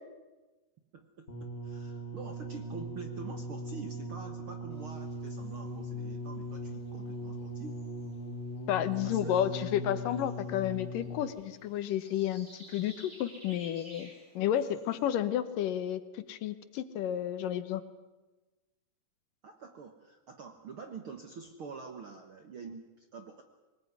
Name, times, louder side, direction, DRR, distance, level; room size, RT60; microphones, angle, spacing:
voice 1, 0.9-7.8 9.0-9.4 14.3-14.4 19.4-23.4, right 5 dB, 60° right, 6 dB, 1.4 m, -46 dB
sound 1, 1.3-11.4 12.2-12.3, equal, 25° left, 1.7 m, -39 dB
sound 2, 4.7-15.2, right 1 dB, 25° right, 7.6 m, -57 dB
voice 2, 8.7-14.1 14.4-17.8, left 11 dB, 75° left, 13 dB, 2.6 m, -31 dB
22.0 x 19.5 x 9.5 m, 1.1 s
omnidirectional pair, 4.1 m